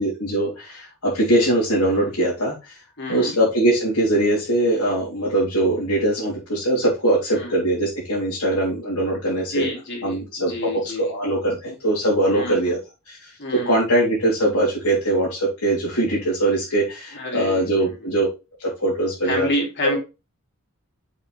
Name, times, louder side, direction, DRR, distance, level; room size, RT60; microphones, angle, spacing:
voice 1, 0.0-2.8 3.1-9.7 10.0-10.7 11.1-12.8 13.1-18.3 18.6-19.5 19.8-20.0, right 1 dB, 80° left, -6 dB, 3.6 m, -22 dB
voice 2, 3.0-3.3 7.3-7.5 9.5-11.1 12.3-12.6 13.4-13.8 17.2-17.9 19.3-20.0, left 1 dB, 50° left, 1 dB, 2.9 m, -29 dB
6.5 x 6.5 x 3.4 m, 0.27 s
head